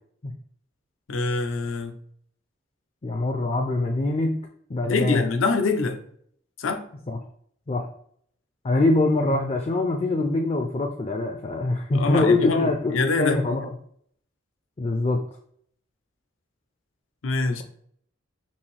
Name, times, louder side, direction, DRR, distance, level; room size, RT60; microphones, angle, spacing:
voice 1, 1.1-1.9 4.8-6.0 6.6-6.9 11.9-13.4 17.2-17.6, left 3 dB, 90° left, 0.6 m, -24 dB
voice 2, 3.0-4.4 4.7-5.3 7.1-7.2 7.7-7.9 8.6-13.7 14.8-15.2, left 2 dB, 30° left, 0.4 m, -24 dB
5.4 x 2.7 x 3.2 m
head